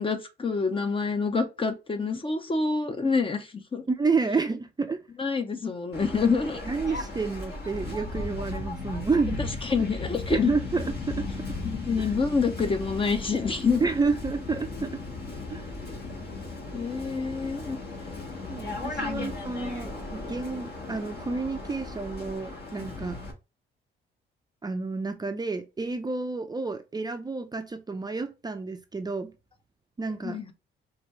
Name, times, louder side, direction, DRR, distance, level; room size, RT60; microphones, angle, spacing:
voice 1, 0.0-3.8 5.2-6.6 9.4-10.5 11.6-13.8 16.7-17.8 19.0-19.4 30.2-30.5, left 4 dB, 25° left, 0.7 m, -27 dB
voice 2, 3.9-5.0 6.6-9.4 10.3-11.3 12.0-12.1 13.8-15.0 15.5-15.7 18.5-23.2 24.6-29.3 30.0-30.4, right 4 dB, 20° right, 0.5 m, -30 dB
Waves surf, 5.9-23.3, left 3 dB, 55° left, 1.6 m, -36 dB
5.0 x 2.6 x 3.2 m
cardioid pair, 90°, 20 cm